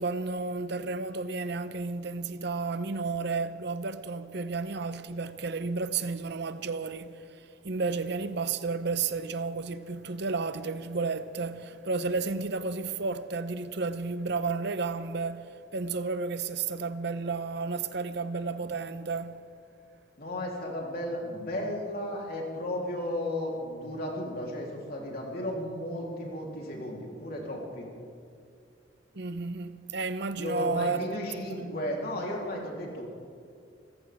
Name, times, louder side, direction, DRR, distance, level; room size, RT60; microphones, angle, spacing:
voice 1, 0.0-19.4 29.1-31.2 31.5-31.8, right 4 dB, 65° right, 0.8 m, -32 dB
voice 2, 20.2-27.9 30.4-33.0, left 1 dB, 55° left, 3.5 m, -34 dB
25.5 x 15.0 x 3.6 m
head